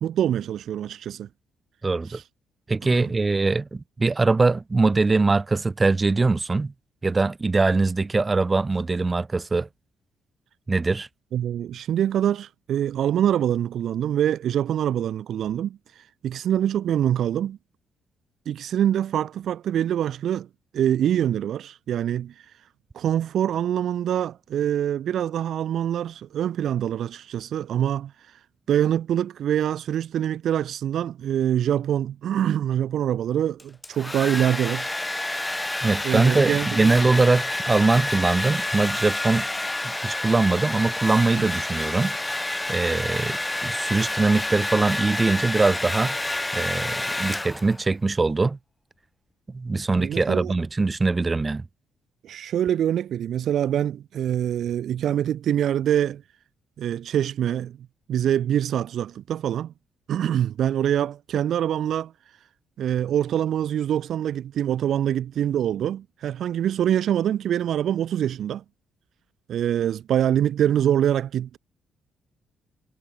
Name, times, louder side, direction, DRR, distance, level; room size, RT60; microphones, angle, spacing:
voice 1, 0.0-1.3 2.1-2.2 2.9-3.1 11.3-17.6 18.5-20.5 20.7-22.3 22.9-28.1 28.7-34.9 36.0-36.9 41.4-41.5 50.0-50.5 52.2-56.2 56.8-57.8 58.1-59.7 60.1-62.1 62.8-68.6 69.5-71.6, right 10 dB, 70° right, 0.4 m, -25 dB
voice 2, 1.8-2.2 2.7-6.7 7.0-9.7 10.7-11.1 35.8-39.5 39.8-42.2 42.7-46.2 46.5-48.6 49.5-51.6, right 3 dB, 25° right, 0.7 m, -22 dB
Domestic sounds home sounds, 33.6-47.9, left 2 dB, 10° left, 0.4 m, -29 dB
cardioid pair, 90°, 0 cm